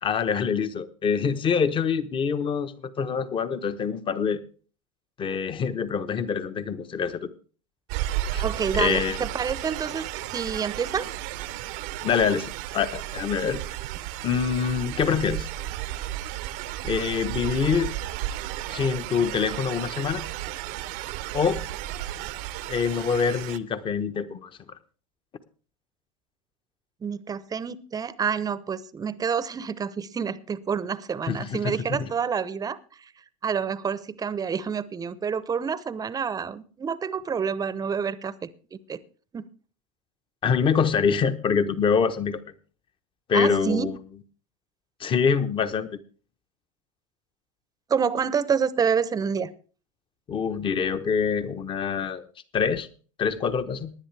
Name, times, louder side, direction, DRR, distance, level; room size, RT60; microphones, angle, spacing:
voice 1, 0.0-4.4 5.2-7.3 8.3-8.4 8.7-9.2 12.0-13.6 14.2-15.5 16.8-17.9 18.7-20.2 21.3-21.6 22.7-24.5 31.3-32.1 40.4-42.4 43.3-44.0 45.0-46.0 50.3-52.2 52.5-52.9 53.2-53.9, left 6 dB, 30° left, 12 dB, 1.1 m, -25 dB
sound 1, 7.9-23.6, right 14 dB, 55° right, 0.8 m, -33 dB
voice 2, 8.4-11.1 27.0-33.1 33.4-39.0 39.3-39.5 43.3-43.9 47.9-49.5, right 6 dB, 20° right, 17 dB, 0.8 m, -28 dB
19.0 x 10.0 x 3.4 m, 0.39 s
hypercardioid pair, 100°, 18 cm